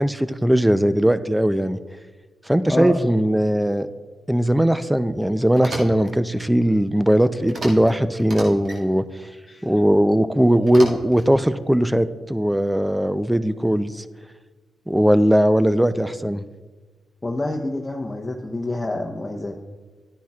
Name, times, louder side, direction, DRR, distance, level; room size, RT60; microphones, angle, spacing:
voice 1, 0.0-1.8 2.5-3.9 4.3-9.0 9.6-14.0 14.9-16.4, equal, 5° right, 13 dB, 0.5 m, -19 dB
voice 2, 2.7-3.0 9.5-9.7 17.2-19.6, left 2 dB, 25° left, 0 dB, 0.9 m, -27 dB
sound 1, 5.5-6.1 7.5-7.9 8.2-8.8 10.7-11.3, right 1 dB, 65° right, 2.0 m, -33 dB
12.5 x 10.0 x 2.4 m, 1.3 s
supercardioid pair, 45°, 0 cm